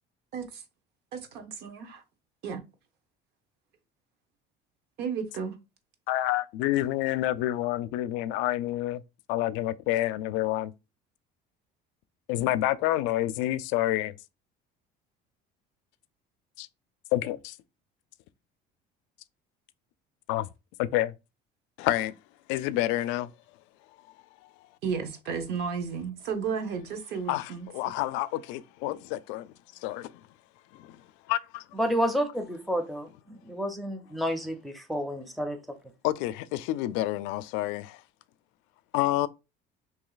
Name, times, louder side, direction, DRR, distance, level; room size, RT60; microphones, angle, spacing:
voice 1, 0.3-0.6 1.1-2.0 2.4-2.6 5.0-5.6 24.8-27.7, right 6 dB, 60° right, 0.9 m, -33 dB
voice 2, 6.1-9.0 9.3-10.7 12.3-14.1 16.6-16.7 17.1-17.6 20.3-20.5 20.8-21.1 21.8-22.1 22.5-23.3 27.3-30.2 30.7-31.6 36.0-38.0 38.9-39.3, left 15 dB, 85° left, 0.4 m, -28 dB
voice 3, 31.8-35.6, equal, ahead, 0.5 m, -30 dB
3.1 x 2.7 x 3.9 m
cardioid pair, 155°, 19 cm